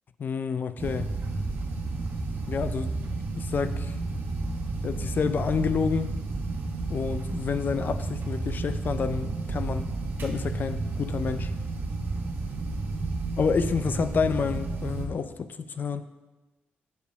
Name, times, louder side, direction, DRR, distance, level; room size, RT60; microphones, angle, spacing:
voice 1, 0.2-1.1 2.5-2.9 3.3-3.9 4.8-6.1 6.9-9.9 10.2-11.5 13.4-16.1, left 6 dB, 50° left, 11 dB, 0.4 m, -29 dB
sound 1, 0.8-15.1, right 3 dB, 60° right, 1.1 m, -31 dB
7.1 x 5.0 x 5.2 m, 1.1 s
cardioid pair, 80°, 4 cm